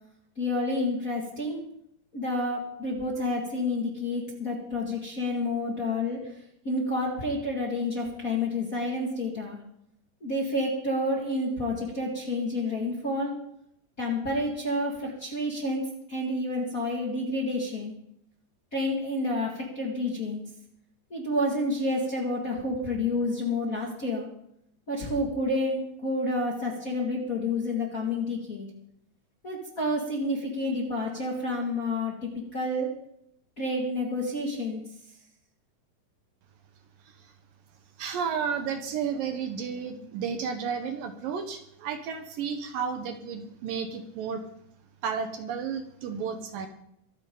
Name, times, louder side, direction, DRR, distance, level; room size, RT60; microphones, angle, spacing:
voice 1, 0.4-1.6 2.1-6.4 6.6-9.6 10.2-13.4 14.0-17.9 18.7-20.4 21.1-24.3 24.9-28.7 29.4-33.0 33.6-34.8, left 1 dB, 30° left, -2 dB, 1.7 m, -29 dB
voice 2, 38.0-44.4 45.0-46.7, right 6 dB, 70° right, 7 dB, 2.5 m, -32 dB
24.5 x 9.1 x 3.9 m, 0.75 s
omnidirectional pair, 4.5 m